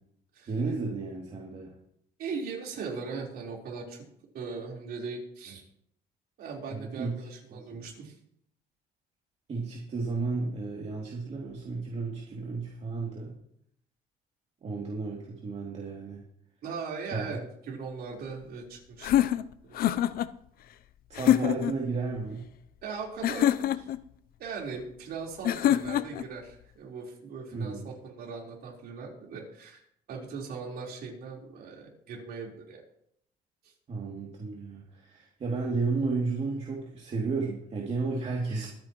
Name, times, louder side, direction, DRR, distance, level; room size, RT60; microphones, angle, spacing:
voice 1, 0.5-1.7 6.7-7.2 7.5-7.9 9.5-13.3 14.6-16.2 17.1-17.4 21.1-22.4 27.5-27.9 33.9-38.7, right 4 dB, 40° right, -3 dB, 2.8 m, -33 dB
voice 2, 2.2-4.0 4.3-5.6 6.4-8.1 16.6-17.4 17.7-19.3 19.7-19.8 21.3-21.6 22.8-23.9 24.4-29.8 30.1-32.8 33.6-33.7, right 5 dB, 65° right, -1 dB, 4.2 m, -39 dB
sound 1, 19.0-20.3 21.1-21.8 23.2-24.0 25.4-26.3, left 11 dB, 60° left, 0.6 m, -25 dB
23.5 x 9.3 x 3.1 m, 0.73 s
cardioid pair, 110°, 17 cm